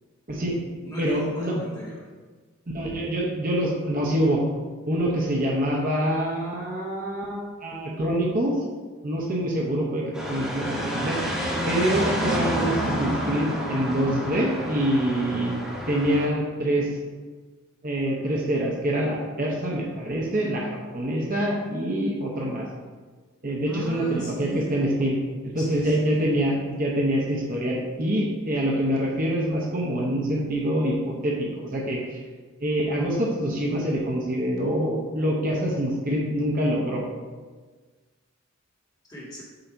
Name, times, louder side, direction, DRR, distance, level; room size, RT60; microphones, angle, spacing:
voice 1, 0.3-2.1 13.9-14.3 23.6-24.8 25.6-26.3 39.0-39.4, equal, 15° left, -6 dB, 1.6 m, -38 dB
voice 2, 1.0-1.6 2.7-4.4 4.8-8.6 9.0-11.2 11.7-15.6 15.9-17.0 17.8-22.7 23.4-32.2 32.6-37.0, right 1 dB, 40° right, -2 dB, 0.8 m, -25 dB
sound 1, 10.1-16.3, equal, 5° right, 1.4 m, -29 dB
7.7 x 2.8 x 4.5 m, 1.4 s
head